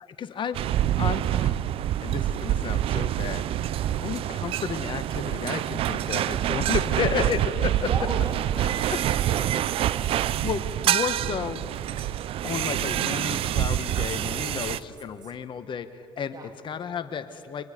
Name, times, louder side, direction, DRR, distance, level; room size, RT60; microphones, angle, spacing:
voice 1, 0.2-0.6 0.9-1.5 2.0-3.5 4.0-7.9 10.4-11.7 12.4-17.6, left 7 dB, 45° left, 10 dB, 1.5 m, -32 dB
sound 1, 0.5-14.8, right 12 dB, 60° right, 0.7 m, -26 dB
voice 2, 7.8-10.3 14.1-14.6 15.2-15.3 16.3-16.5, right 3 dB, 35° right, 4 dB, 3.1 m, -38 dB
29.5 x 25.5 x 5.3 m, 2.5 s
hypercardioid pair, 60°, 11 cm